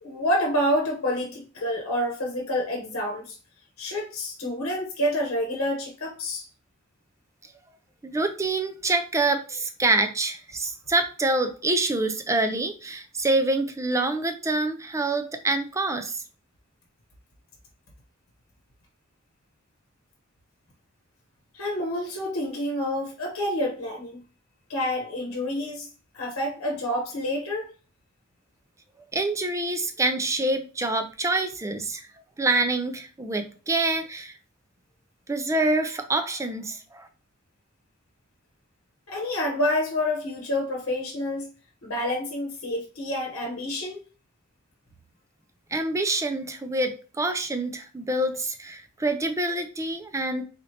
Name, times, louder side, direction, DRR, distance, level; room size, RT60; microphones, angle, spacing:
voice 1, 0.0-3.4 3.8-6.5 21.5-24.2 24.7-25.9 26.1-27.7 39.1-41.5 41.8-44.0, left 1 dB, 85° left, 0 dB, 0.9 m, -28 dB
voice 2, 8.0-16.2 29.1-32.1 32.4-34.3 35.3-37.1 45.7-50.4, right 2 dB, 15° right, 7 dB, 0.4 m, -26 dB
4.1 x 2.7 x 3.2 m, 0.37 s
head